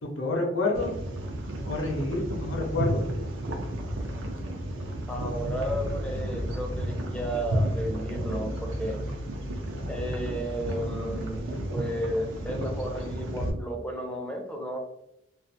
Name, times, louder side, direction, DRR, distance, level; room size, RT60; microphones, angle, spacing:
voice 1, 0.0-0.9 1.6-3.1, left 2 dB, 75° left, -1 dB, 0.7 m, -28 dB
sound 1, 0.7-13.5, right 1 dB, 85° right, 0.5 m, -32 dB
voice 2, 5.1-9.0 9.9-11.4 11.7-14.8, equal, 5° left, 0 dB, 0.4 m, -33 dB
2.4 x 2.4 x 2.6 m, 0.83 s
head